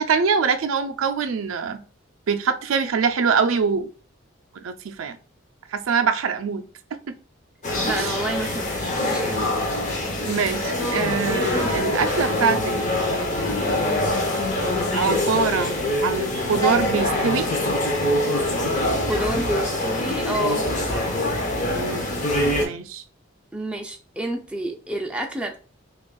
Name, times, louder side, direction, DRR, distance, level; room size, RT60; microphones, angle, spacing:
voice 1, 0.0-1.8 2.3-3.9 4.6-5.2 5.7-6.6 7.9-8.1 10.2-12.7 14.9-15.8 16.0-17.5 21.7-22.1 22.6-23.0, right 5 dB, 80° right, 8 dB, 0.4 m, -23 dB
sound 1, 7.6-22.6, left 1 dB, 35° left, 0.7 m, -24 dB
voice 2, 7.8-9.5 19.1-20.6 23.5-25.6, right 1 dB, 5° right, 2 dB, 0.4 m, -29 dB
6.0 x 2.4 x 2.3 m, 0.38 s
head